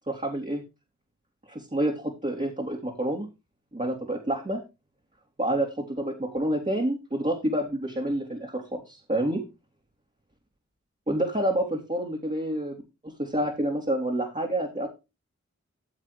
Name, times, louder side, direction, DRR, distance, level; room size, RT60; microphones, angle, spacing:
voice 1, 0.1-0.6 1.5-3.3 3.7-4.6 5.4-9.4 11.1-12.7 13.0-14.9, right 1 dB, 25° right, -1 dB, 3.1 m, -28 dB
14.0 x 7.4 x 3.3 m, 0.26 s
wide cardioid pair, 55°, 29 cm